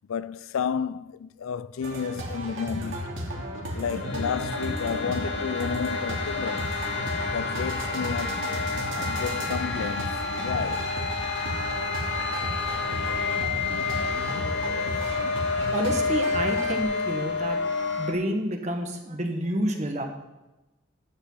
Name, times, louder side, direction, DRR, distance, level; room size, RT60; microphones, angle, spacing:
voice 1, 0.1-3.1 3.7-6.8 7.3-11.0 13.7-14.1 14.5-15.7, left 6 dB, 90° left, 0.4 m, -33 dB
sound 1, 1.8-16.8, right 1 dB, 75° right, 2.6 m, -34 dB
sound 2, 3.6-18.1, left 4 dB, 60° left, 1.9 m, -29 dB
voice 2, 15.7-17.6 18.0-20.0, right 1 dB, 35° right, 1.4 m, -29 dB
11.5 x 7.3 x 5.5 m
head